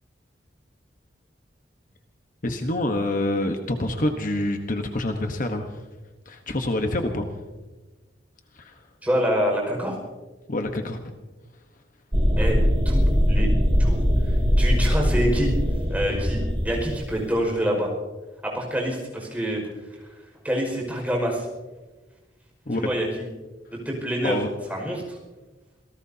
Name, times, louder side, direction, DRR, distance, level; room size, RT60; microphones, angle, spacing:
voice 1, 2.4-5.7 6.3-7.3 8.5-8.8 10.5-11.0 22.7-22.9 24.2-24.5, left 1 dB, 45° left, 5 dB, 1.2 m, -26 dB
voice 2, 9.0-10.0 12.4-12.6 12.8-13.5 13.8-14.0 14.3-15.5 15.9-17.9 18.4-19.6 20.4-21.5 22.7-23.2 23.7-24.4 24.7-25.2, equal, 10° right, -1 dB, 5.5 m, -26 dB
sound 1, 12.1-17.3, equal, 30° right, 2.5 m, -21 dB
27.0 x 18.0 x 2.8 m, 1.2 s
head